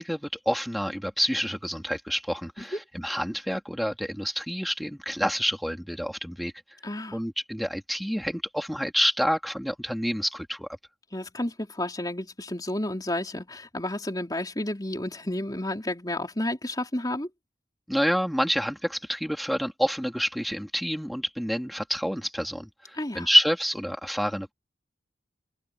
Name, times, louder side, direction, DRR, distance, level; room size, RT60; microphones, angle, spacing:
voice 1, 0.0-6.5 7.1-10.7 17.9-24.5, equal, ahead, 3.1 m, -28 dB
voice 2, 6.8-7.2 11.1-17.3 22.9-23.3, left 1 dB, 20° left, 4.0 m, -31 dB
head